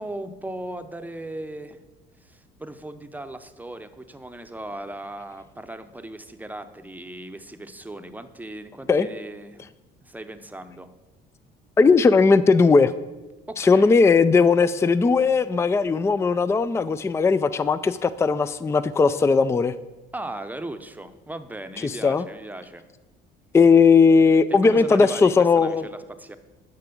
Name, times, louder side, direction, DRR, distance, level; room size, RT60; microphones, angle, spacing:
voice 1, 0.0-1.8 2.2-9.6 10.0-10.9 13.5-13.9 20.1-22.8 24.5-26.4, right 1 dB, 10° right, 0.7 m, -37 dB
voice 2, 11.8-12.9 13.6-19.7 21.8-22.2 23.5-25.8, left 4 dB, 15° left, 0.3 m, -18 dB
10.5 x 4.9 x 6.9 m
cardioid pair, 95°, 21 cm